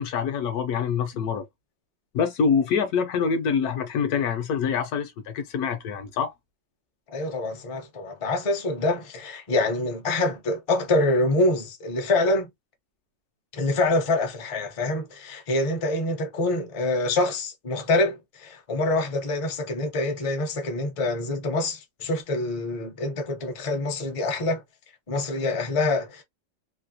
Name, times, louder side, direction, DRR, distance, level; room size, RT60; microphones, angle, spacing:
voice 1, 0.0-1.4 2.1-6.3, left 6 dB, 70° left, 1.0 m, -25 dB
voice 2, 7.1-12.5 13.5-24.6 25.1-26.2, left 2 dB, 45° left, 0.4 m, -25 dB
3.2 x 2.4 x 2.7 m
omnidirectional pair, 1.9 m